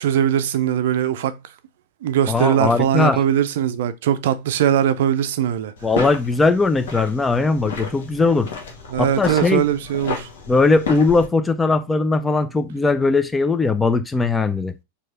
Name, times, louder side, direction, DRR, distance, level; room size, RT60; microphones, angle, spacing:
voice 1, 0.0-1.4 2.0-5.7 8.9-10.3, right 10 dB, 55° right, 0.5 m, -20 dB
voice 2, 2.3-3.2 5.8-8.5 9.0-9.6 10.5-14.7, left 3 dB, 10° left, 0.5 m, -19 dB
sound 1, 5.8-11.3, left 5 dB, 60° left, 1.1 m, -32 dB
4.6 x 2.8 x 4.2 m
figure-of-eight pair, 90°, 0 cm